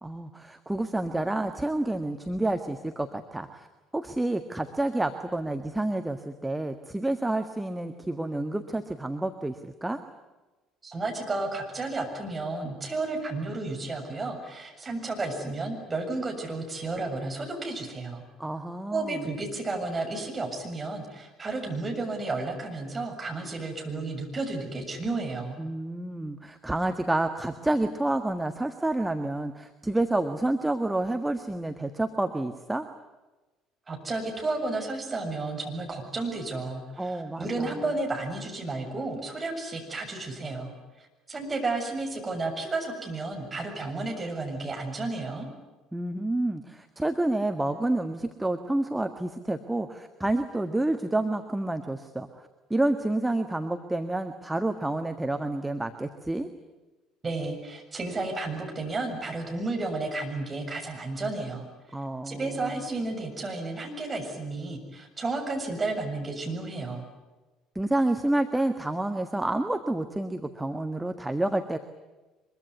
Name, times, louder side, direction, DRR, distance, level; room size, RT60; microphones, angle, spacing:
voice 1, 0.0-3.7 3.9-10.0 18.4-19.2 25.6-32.9 37.0-37.7 45.9-56.5 61.9-62.7 67.7-71.8, right 2 dB, 10° right, 7 dB, 1.6 m, -29 dB
voice 2, 10.8-18.2 18.9-25.6 33.9-40.7 41.3-45.5 57.2-61.7 62.2-67.0, right 3 dB, 25° right, 2 dB, 7.1 m, -32 dB
24.0 x 23.0 x 9.8 m, 1.2 s
figure-of-eight pair, 55°, 0 cm